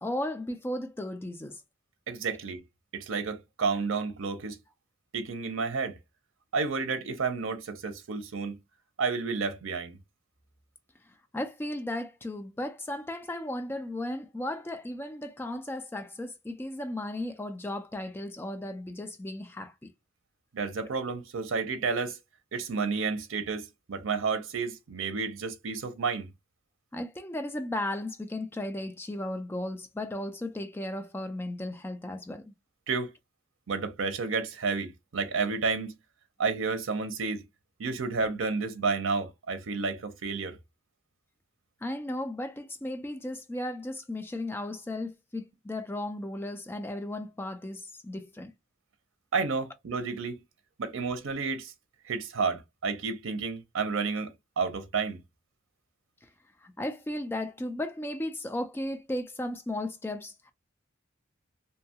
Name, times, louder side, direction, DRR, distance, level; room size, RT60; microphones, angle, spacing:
voice 1, 0.0-1.6 11.3-19.9 26.9-32.4 41.8-48.5 56.6-60.5, left 1 dB, 10° left, 0.3 m, -35 dB
voice 2, 2.1-2.6 2.9-4.6 5.1-6.0 6.5-8.6 9.0-10.0 20.5-22.2 22.5-26.3 32.9-33.1 33.7-35.9 36.4-37.4 37.8-40.6 49.3-50.4 50.8-51.7 52.1-55.2, right 4 dB, 85° right, 0.6 m, -31 dB
2.7 x 2.2 x 2.7 m
head